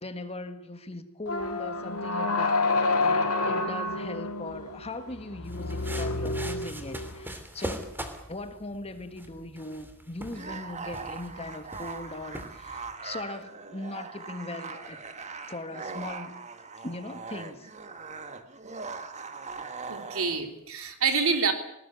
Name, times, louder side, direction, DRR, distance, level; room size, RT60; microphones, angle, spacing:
voice 1, 0.0-7.9 8.3-15.0 15.5-16.4 16.8-17.7, left 2 dB, 25° left, 9 dB, 1.8 m, -39 dB
sound 1, 1.3-7.3, left 3 dB, 70° left, 2.9 m, -29 dB
sound 2, 5.4-12.9, right 1 dB, 10° right, 3.0 m, -42 dB
sound 3, 10.3-20.5, right 4 dB, 30° right, 1.7 m, -41 dB
voice 2, 19.9-21.5, right 5 dB, 65° right, 6 dB, 3.5 m, -27 dB
20.0 x 19.0 x 9.8 m, 0.80 s
head